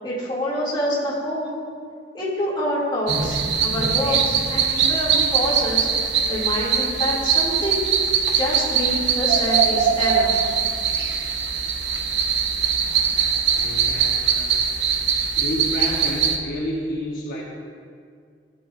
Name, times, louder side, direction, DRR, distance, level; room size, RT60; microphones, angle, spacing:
voice 1, 0.0-1.6 2.1-5.9 6.3-7.8 8.3-10.4, left 1 dB, 25° left, -7 dB, 2.4 m, -26 dB
sound 1, 3.1-16.4, right 6 dB, 65° right, 0.7 m, -21 dB
voice 2, 12.7-14.6 15.4-17.4, equal, 55° left, -5 dB, 1.1 m, -30 dB
15.0 x 7.4 x 2.5 m, 2.1 s
head